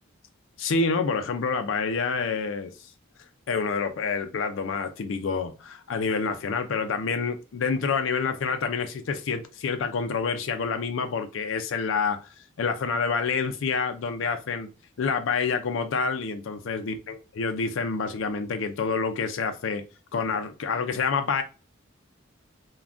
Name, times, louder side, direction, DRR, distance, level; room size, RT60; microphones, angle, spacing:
voice 1, 0.6-2.9 3.5-14.7 15.0-19.8 20.1-21.4, left 5 dB, 75° left, 0.4 m, -28 dB
2.5 x 2.2 x 3.4 m
head